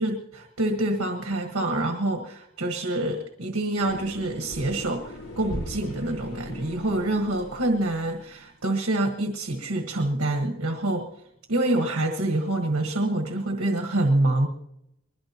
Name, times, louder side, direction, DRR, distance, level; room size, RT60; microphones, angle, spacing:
voice 1, 0.0-11.1 11.5-14.5, right 1 dB, 70° right, 3 dB, 1.5 m, -26 dB
sound 1, 3.8-8.4, left 1 dB, 80° left, 3.8 m, -39 dB
21.5 x 21.0 x 3.0 m, 0.82 s
head